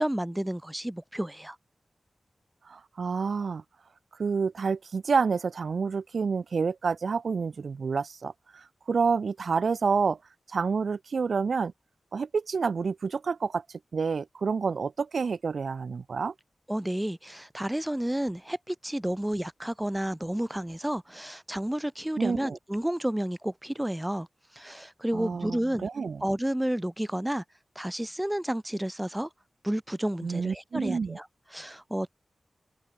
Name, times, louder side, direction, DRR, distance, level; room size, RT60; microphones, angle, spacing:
voice 1, 0.0-1.6 16.7-24.3 24.5-25.9 26.2-27.4 27.8-29.3 29.6-31.3 31.5-32.2, right 1 dB, 10° right, 4.0 m, -31 dB
voice 2, 2.7-3.6 4.2-10.2 10.5-11.7 12.1-13.6 13.9-16.3 22.2-22.6 25.1-26.2 30.2-31.2, right 5 dB, 70° right, 2.3 m, -28 dB
open air
wide cardioid pair, 100°, 0 cm